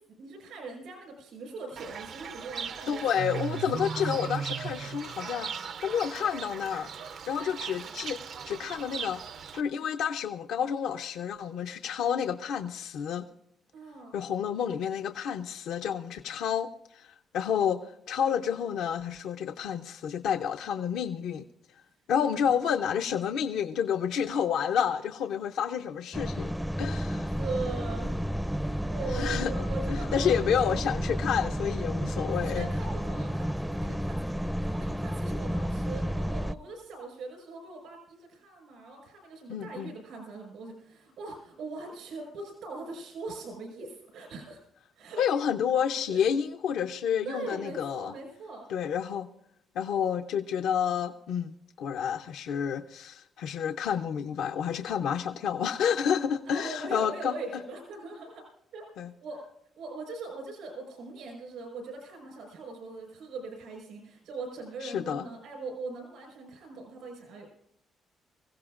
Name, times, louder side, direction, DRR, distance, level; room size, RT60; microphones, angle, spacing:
voice 1, 0.2-3.0 3.5-3.6 3.8-4.2 13.7-14.2 22.4-22.6 27.3-28.2 28.5-30.6 32.3-44.6 44.9-45.2 46.1-46.2 47.2-48.7 56.5-58.4 58.7-58.8 59.2-59.5 59.8-67.5, right 3 dB, 85° right, 0 dB, 4.8 m, -41 dB
Fowl / Bird, 1.8-9.6, right 7 dB, 65° right, 0.6 m, -37 dB
voice 2, 2.9-5.5 5.8-6.9 7.3-8.2 8.5-9.2 9.5-13.2 14.1-21.4 22.1-27.3 29.1-29.5 29.9-32.7 39.5-39.9 45.2-48.1 48.7-49.3 49.8-57.3 59.0-59.1 64.8-65.2, left 8 dB, 85° left, 6 dB, 0.6 m, -30 dB
sound 1, 26.1-36.5, equal, 5° right, 0.4 m, -31 dB
24.5 x 16.0 x 2.5 m, 0.76 s
cardioid pair, 90°, 0 cm